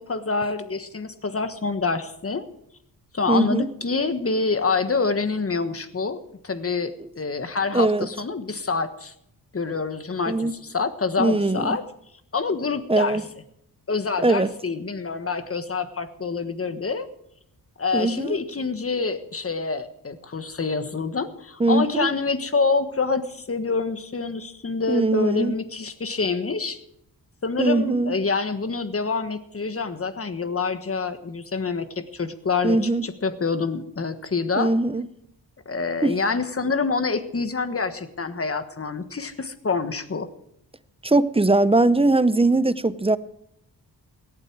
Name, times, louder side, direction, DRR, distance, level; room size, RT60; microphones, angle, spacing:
voice 1, 0.0-2.5 3.1-9.1 9.5-11.8 12.3-13.2 13.9-17.1 17.8-26.8 27.4-32.8 33.0-34.7 35.6-40.3, left 4 dB, 35° left, 1.4 m, -26 dB
voice 2, 3.3-3.7 7.0-7.1 7.7-8.1 10.3-10.6 11.2-11.8 12.9-13.2 14.2-14.5 17.9-18.4 21.6-22.1 24.9-25.6 27.6-28.2 32.6-33.1 34.6-35.1 36.0-36.2 41.0-43.2, right 2 dB, 15° right, 0.6 m, -21 dB
17.5 x 12.0 x 4.6 m
cardioid pair, 80°, 41 cm